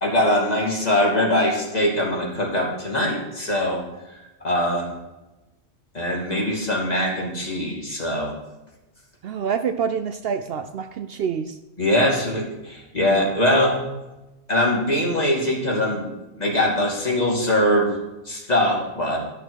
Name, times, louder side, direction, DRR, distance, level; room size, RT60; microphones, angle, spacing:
voice 1, 0.0-3.8 4.4-4.9 5.9-8.3 11.8-13.8 14.5-16.1 16.4-18.0 18.3-19.2, left 1 dB, 35° left, -2 dB, 2.6 m, -22 dB
voice 2, 9.2-11.6, right 7 dB, 65° right, 9 dB, 0.7 m, -26 dB
12.0 x 6.4 x 6.3 m, 1.0 s
omnidirectional pair, 1.2 m